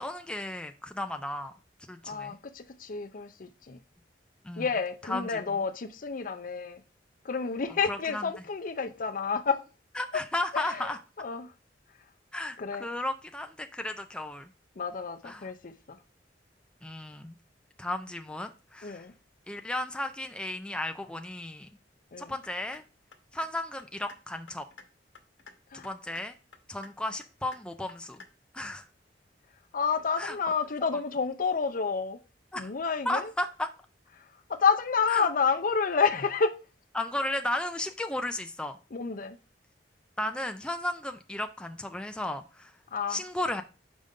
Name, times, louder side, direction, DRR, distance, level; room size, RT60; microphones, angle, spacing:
voice 1, 0.0-1.5 1.9-2.4 4.4-4.7 5.1-5.6 7.9-8.3 9.9-11.0 12.3-14.5 15.2-15.5 16.8-17.3 17.8-19.0 19.5-21.7 22.2-22.8 23.3-24.7 25.7-26.3 26.7-28.2 28.5-28.9 30.2-30.4 32.5-32.7 33.1-33.7 35.1-35.3 36.9-38.8 40.2-42.7 43.1-43.6, left 1 dB, 5° left, 0.4 m, -34 dB
voice 2, 2.0-3.8 4.6-6.8 7.2-9.6 10.5-10.9 11.2-11.5 12.6-12.9 14.8-16.0 18.8-19.1 22.1-22.3 25.7-25.9 29.7-32.2 32.5-33.3 34.5-36.6 38.9-39.4 42.9-43.2, left 5 dB, 50° left, 0.6 m, -29 dB
sound 1, 22.4-22.8 23.1-23.5 23.8-24.2 24.5-24.8 25.1-25.5 25.8-26.2 26.5-26.9 27.2-27.6 27.9-28.3 28.6-28.7, left 4 dB, 80° left, 1.0 m, -50 dB
6.5 x 5.1 x 3.6 m
head